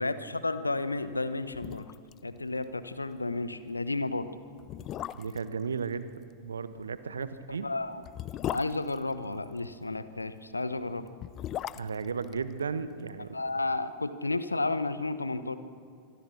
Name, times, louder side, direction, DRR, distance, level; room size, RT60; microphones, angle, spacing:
voice 1, 0.0-1.9 2.2-4.3 7.2-7.3 7.6-8.0 8.5-11.1 13.3-15.6, left 2 dB, 80° left, 13 dB, 1.1 m, -32 dB
sound 1, 1.5-2.2 2.5-2.6 3.0-3.2 3.9-4.0 4.6-5.5 7.0-9.7 11.0-13.2 13.5-13.6, left 12 dB, 35° left, 0.7 m, -38 dB
voice 2, 5.1-6.1 6.4-7.7 11.7-13.4, right 5 dB, 70° right, 13 dB, 1.1 m, -34 dB
26.0 x 24.0 x 6.3 m, 2.2 s
figure-of-eight pair, 90°, 0 cm